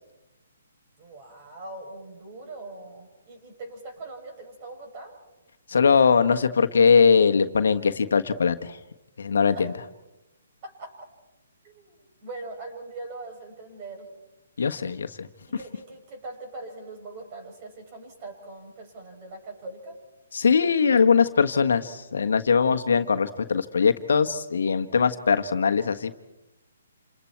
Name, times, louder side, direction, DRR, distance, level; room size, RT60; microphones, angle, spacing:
voice 1, 1.0-5.2 9.5-9.6 10.6-10.9 11.6-11.9 12.2-14.1 15.5-20.0, right 2 dB, 35° right, 1 dB, 8.0 m, -41 dB
voice 2, 5.7-8.8 9.2-9.7 14.6-15.3 20.3-26.2, left 5 dB, 70° left, 7 dB, 1.4 m, -21 dB
28.5 x 28.0 x 4.6 m, 1.0 s
hypercardioid pair, 140°, 0 cm